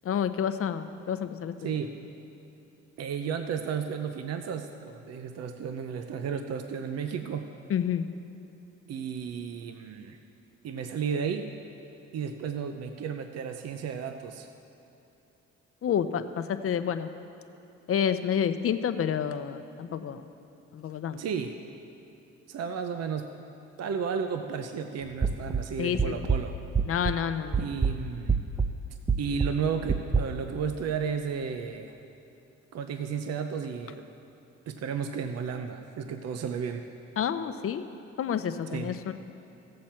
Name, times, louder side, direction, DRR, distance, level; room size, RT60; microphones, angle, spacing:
voice 1, 0.0-1.8 7.7-8.1 15.8-17.1 17.9-20.3 20.7-21.3 25.8-26.2 26.8-27.7 37.2-37.8 38.2-39.1, left 8 dB, 50° left, 10 dB, 0.6 m, -29 dB
voice 2, 1.6-1.9 3.0-7.5 8.9-10.2 10.6-11.5 12.1-14.5 21.1-21.6 22.5-23.3 23.8-26.5 27.6-28.4 29.2-31.9 32.7-34.0 34.7-36.9 38.7-38.9, right 6 dB, 55° right, 7 dB, 0.6 m, -33 dB
sound 1, 25.2-27.3 27.5-30.2, right 5 dB, 15° right, 0.4 m, -27 dB
16.0 x 7.5 x 4.4 m, 2.9 s
cardioid pair, 90°, 30 cm